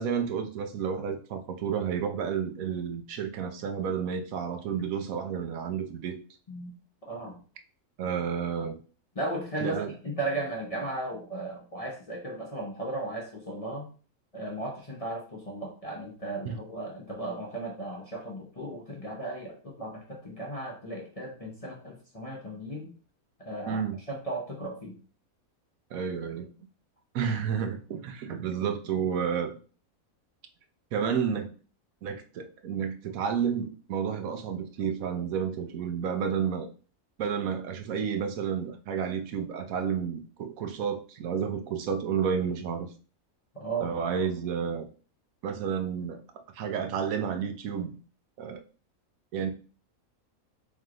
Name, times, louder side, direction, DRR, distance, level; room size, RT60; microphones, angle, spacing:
voice 1, 0.0-6.2 8.0-8.8 9.6-9.9 16.4-16.6 23.7-24.0 25.9-26.5 27.1-29.6 30.9-31.5 32.0-36.7 37.2-42.9 43.8-44.9 45.4-46.2 46.5-48.0 48.4-48.6 49.3-49.5, right 7 dB, 80° right, 1.1 m, -31 dB
voice 2, 7.0-7.4 9.2-9.8 10.0-13.9 14.3-22.9 23.4-23.8 24.1-25.0 43.5-43.9, right 2 dB, 30° left, 0.7 m, -36 dB
3.6 x 3.1 x 3.7 m
omnidirectional pair, 1.5 m